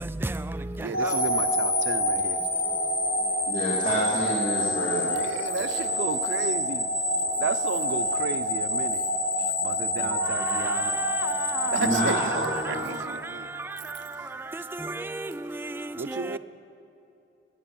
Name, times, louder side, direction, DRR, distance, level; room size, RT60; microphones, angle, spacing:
voice 1, 0.0-2.0 2.4-2.8 4.9-5.6 7.2-7.4 10.0-16.4, right 2 dB, 10° right, 0.3 m, -36 dB
voice 2, 0.8-2.5 5.0-6.9 7.4-9.0 9.4-11.0 11.7-13.5 16.0-16.4, right 4 dB, 85° right, 0.5 m, -33 dB
sound 1, 0.9-13.1, left 1 dB, 70° left, 2.9 m, -27 dB
voice 3, 3.5-5.1 11.8-12.9, equal, 40° left, 2.4 m, -28 dB
20.0 x 9.3 x 7.1 m
head